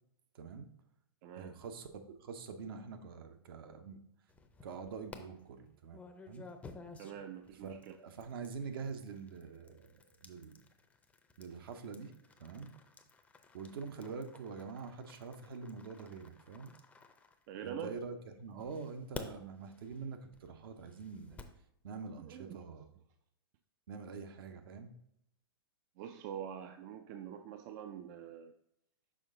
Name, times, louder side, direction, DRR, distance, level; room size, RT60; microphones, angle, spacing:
voice 1, 0.3-0.7 1.4-4.0 4.6-6.5 7.6-10.0 10.2-10.6 11.4-12.1 12.4-12.7 13.5-16.7 17.6-21.4 21.8-22.9 23.9-24.9, right 5 dB, 65° right, 7 dB, 0.9 m, -45 dB
voice 2, 1.2-1.6 7.0-8.0 17.5-18.0 22.2-22.6 26.0-28.5, right 8 dB, 45° right, 8 dB, 0.4 m, -45 dB
Fast Waterdrop, 4.3-5.2 5.9-17.9 18.6-21.6, left 4 dB, 10° left, 0.6 m, -53 dB
6.2 x 4.5 x 3.8 m, 0.77 s
hypercardioid pair, 125°, 13 cm